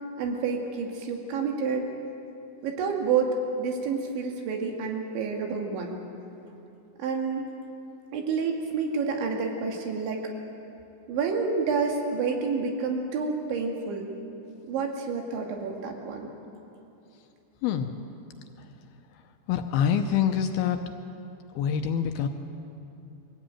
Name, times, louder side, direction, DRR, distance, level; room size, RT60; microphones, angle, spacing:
voice 1, 0.2-1.9 2.6-6.0 7.0-7.5 8.1-10.2 11.1-14.1 14.7-16.3, right 5 dB, 85° right, 2 dB, 4.3 m, -29 dB
voice 2, 17.6-18.0 19.5-20.8 21.6-22.3, left 8 dB, 75° left, 6 dB, 2.4 m, -25 dB
23.5 x 15.5 x 8.9 m, 2.8 s
omnidirectional pair, 5.1 m